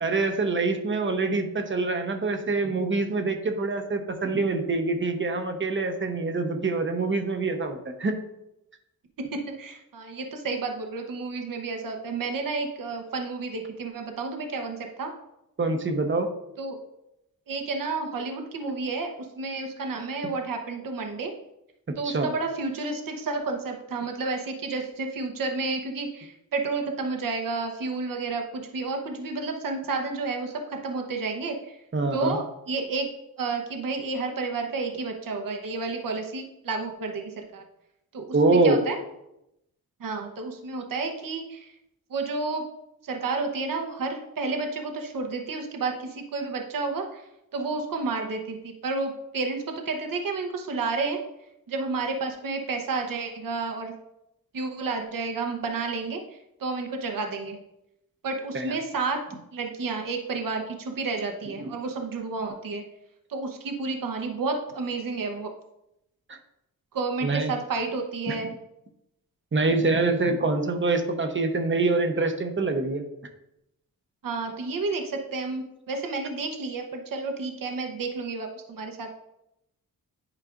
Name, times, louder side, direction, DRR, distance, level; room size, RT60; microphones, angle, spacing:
voice 1, 0.0-8.2 15.6-16.3 22.0-22.3 31.9-32.4 38.3-38.8 58.5-58.7 66.3-66.4 67.2-67.5 68.3-68.4 69.5-73.0, right 3 dB, 35° right, 6 dB, 0.9 m, -25 dB
voice 2, 9.2-15.1 16.6-16.8 17.5-21.3 22.0-31.8 32.1-33.1 33.4-37.6 38.1-39.0 40.0-41.7 42.1-42.6 43.0-51.2 51.7-53.9 54.5-57.6 58.2-59.2 59.5-62.8 63.3-65.5 66.9-68.5 74.2-79.1, right 3 dB, 65° right, 3 dB, 1.0 m, -31 dB
11.0 x 4.8 x 2.5 m, 0.86 s
wide cardioid pair, 115°, 36 cm